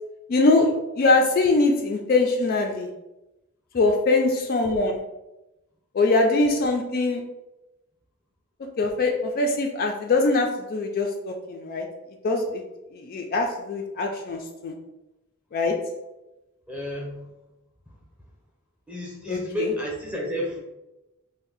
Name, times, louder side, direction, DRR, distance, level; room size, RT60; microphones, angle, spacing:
voice 1, 0.3-0.7 1.0-2.9 3.7-5.0 5.9-7.2 8.8-11.9 12.2-12.6 12.9-14.7 15.5-15.8 19.3-19.7, left 3 dB, 45° left, 2 dB, 0.3 m, -22 dB
voice 2, 16.7-17.3 17.9-18.0 18.9-20.6, left 1 dB, 5° right, -2 dB, 0.7 m, -31 dB
2.6 x 2.0 x 3.9 m, 0.97 s
head